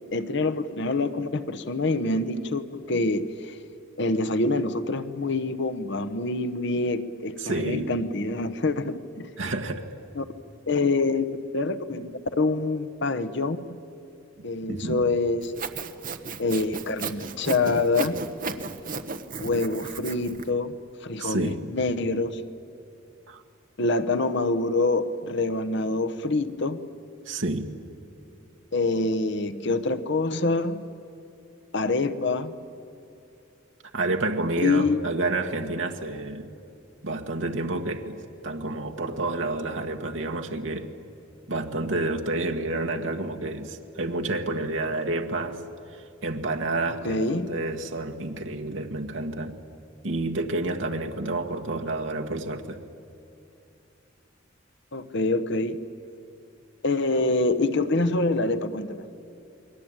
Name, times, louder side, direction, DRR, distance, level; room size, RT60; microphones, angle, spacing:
voice 1, 0.1-3.6 4.0-9.3 10.1-10.2 10.7-11.3 11.5-13.6 14.4-15.5 16.4-18.2 19.4-20.8 21.0-22.4 23.8-26.8 28.7-30.8 31.7-32.5 34.6-35.0 47.0-47.5 54.9-55.8 56.8-59.0, left 2 dB, 60° left, 11 dB, 1.1 m, -26 dB
voice 2, 7.4-7.9 9.4-9.8 14.7-15.0 21.2-21.6 23.3-23.4 27.2-27.7 33.9-36.5 37.0-40.9 41.5-45.6 45.9-49.6 50.0-52.8, right 2 dB, 65° right, 4 dB, 1.6 m, -29 dB
Sawing, 15.4-20.5, right 4 dB, 45° right, 1.2 m, -35 dB
29.5 x 21.5 x 8.9 m, 2.7 s
head